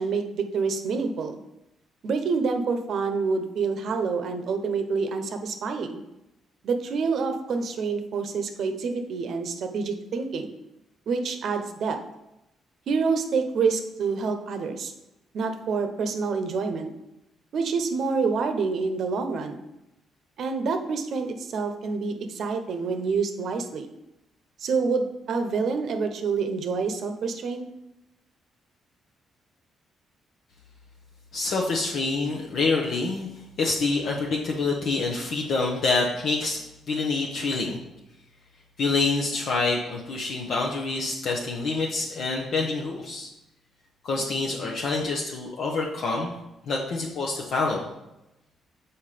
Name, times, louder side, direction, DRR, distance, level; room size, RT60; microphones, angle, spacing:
voice 1, 0.0-1.4 2.0-6.0 6.6-10.5 11.1-12.0 12.9-14.9 15.3-16.9 17.5-19.6 20.4-23.9 24.6-27.6, right 4 dB, 65° right, 7 dB, 0.8 m, -27 dB
voice 2, 31.3-33.3 33.6-36.6 36.9-37.8 38.8-43.3 44.0-46.4 46.7-47.9, left 3 dB, 65° left, -1 dB, 0.9 m, -26 dB
5.7 x 4.3 x 5.0 m, 0.92 s
cardioid pair, 90°, 0 cm